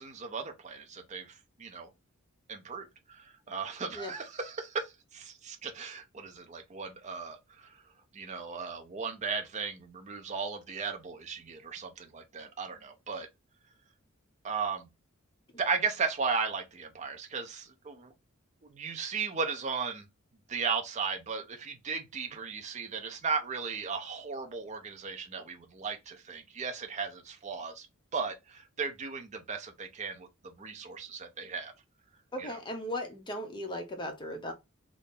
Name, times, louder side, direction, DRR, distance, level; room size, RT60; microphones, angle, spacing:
voice 1, 0.0-1.9 2.5-7.7 8.1-13.3 14.4-14.9 15.6-18.1 18.7-20.1 20.5-27.9 28.1-31.7 32.4-32.6, right 5 dB, 35° right, 0.5 m, -36 dB
voice 2, 32.3-34.5, left 1 dB, 20° left, 0.7 m, -37 dB
2.8 x 2.5 x 3.6 m
head